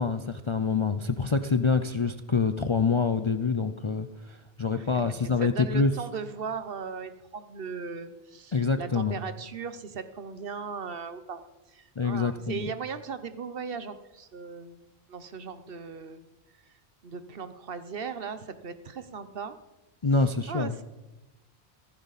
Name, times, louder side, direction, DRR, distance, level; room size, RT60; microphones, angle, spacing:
voice 1, 0.0-5.9 8.5-9.2 12.0-12.7 20.0-20.7, left 4 dB, 40° left, 9 dB, 0.4 m, -26 dB
voice 2, 4.8-11.4 11.7-14.8 15.1-16.2 17.0-19.6 20.5-20.8, right 5 dB, 60° right, 12 dB, 1.0 m, -38 dB
15.0 x 14.5 x 4.1 m, 1.0 s
omnidirectional pair, 1.1 m